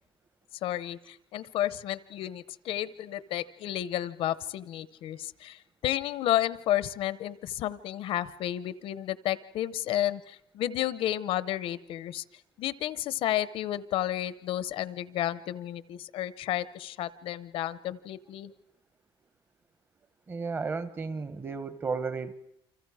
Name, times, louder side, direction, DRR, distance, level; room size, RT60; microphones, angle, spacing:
voice 1, 0.6-12.2 12.6-18.5, left 13 dB, 75° left, 16 dB, 0.8 m, -32 dB
voice 2, 20.3-22.3, right 4 dB, 25° right, 12 dB, 1.0 m, -33 dB
29.0 x 25.0 x 4.8 m, 0.78 s
cardioid pair, 170°, 9 cm